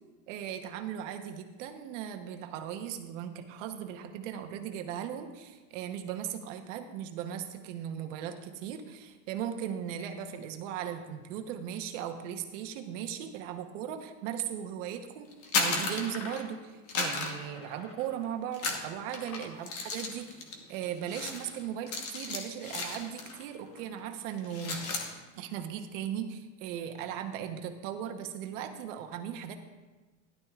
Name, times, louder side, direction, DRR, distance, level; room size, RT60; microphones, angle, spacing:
voice 1, 0.3-15.3 15.6-20.4 20.7-24.8 25.4-29.6, right 9 dB, 70° right, 6 dB, 1.1 m, -38 dB
sound 1, 15.3-16.5 16.9-18.1 18.5-23.5 23.7-24.0 24.3-25.1, left 3 dB, 35° left, 1.2 m, -35 dB
13.0 x 11.5 x 2.4 m, 1.2 s
supercardioid pair, 160°, 39 cm